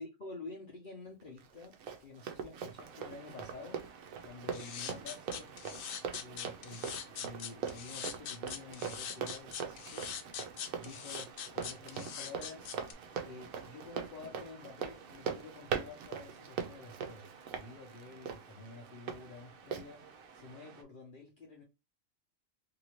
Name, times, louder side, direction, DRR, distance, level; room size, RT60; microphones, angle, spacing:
voice 1, 0.0-4.0 4.2-10.1 10.8-12.7 13.2-17.3 17.5-21.6, left 3 dB, 45° left, 0.8 m, -50 dB
Run, 1.4-19.2 19.7-19.8, right 7 dB, 85° right, 1.0 m, -41 dB
Waves surf, 2.8-20.8, right 5 dB, 60° right, 0.6 m, -55 dB
sound 1, 4.5-12.9, left 8 dB, 80° left, 1.0 m, -42 dB
2.8 x 2.6 x 2.9 m
omnidirectional pair, 1.4 m